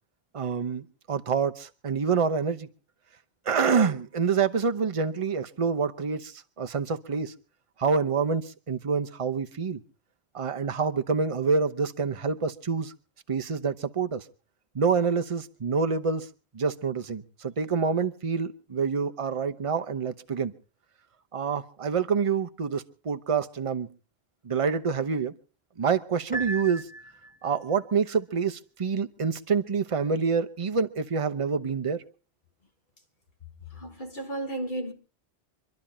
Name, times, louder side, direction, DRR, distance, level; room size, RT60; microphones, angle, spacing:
voice 1, 0.3-2.7 3.5-7.3 7.8-9.8 10.3-12.9 13.3-14.2 14.7-16.3 16.5-20.5 21.3-23.9 24.4-25.3 25.8-26.9 27.4-32.0, right 5 dB, 30° right, 0.8 m, -27 dB
Piano, 26.3-27.6, right 2 dB, 10° left, 1.2 m, -36 dB
voice 2, 33.7-34.9, right 1 dB, 45° left, 1.6 m, -33 dB
25.5 x 12.0 x 4.3 m
omnidirectional pair, 1.2 m